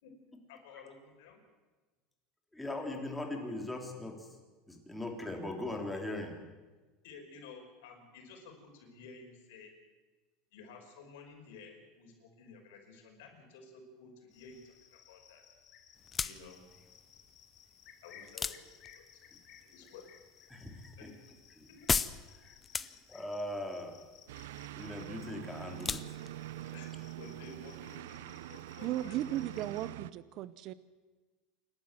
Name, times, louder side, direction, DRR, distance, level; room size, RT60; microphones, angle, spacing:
voice 1, 0.5-1.4 7.0-9.7 10.5-15.4 16.2-16.6 18.0-18.6 19.0-19.2 19.6-20.0 21.0-21.3 21.7-21.9 26.7-26.9 27.2-29.4, left 4 dB, 80° left, 2 dB, 5.6 m, -53 dB
voice 2, 2.5-4.3 4.7-6.4 20.5-21.1 21.5-21.7 22.4-22.6 23.1-24.0 24.7-26.0, left 1 dB, 5° left, 2 dB, 3.6 m, -40 dB
Cricket, 14.3-29.9, left 9 dB, 50° left, 2.6 m, -60 dB
sound 1, 16.0-28.0, left 5 dB, 20° left, 0.7 m, -40 dB
sound 2, 24.3-30.1, right 14 dB, 90° right, 0.6 m, -45 dB
voice 3, 28.8-30.7, right 13 dB, 55° right, 16 dB, 0.8 m, -36 dB
28.0 x 12.0 x 7.6 m, 1.3 s
supercardioid pair, 130°, 0 cm